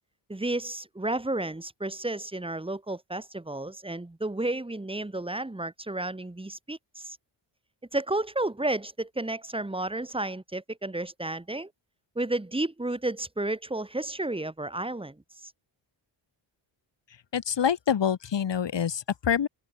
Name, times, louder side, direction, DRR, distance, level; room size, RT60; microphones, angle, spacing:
voice 1, 0.3-7.2 7.9-11.7 12.2-15.2 15.4-15.5, right 2 dB, 10° right, 7.2 m, -32 dB
voice 2, 17.3-19.5, left 8 dB, 60° left, 7.8 m, -26 dB
open air
wide cardioid pair, 160°, 48 cm